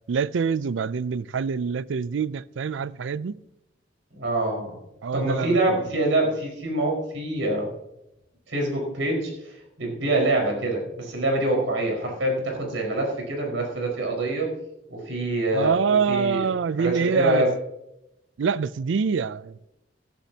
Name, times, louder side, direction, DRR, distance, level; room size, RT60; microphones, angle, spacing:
voice 1, 0.1-3.3 5.0-5.6 15.5-17.5 18.4-19.7, right 6 dB, 70° right, 0.4 m, -25 dB
voice 2, 4.1-4.7 5.1-7.7 8.5-14.5 14.9-16.5 16.8-17.6, right 1 dB, 85° right, 4.7 m, -25 dB
16.0 x 11.5 x 2.8 m
head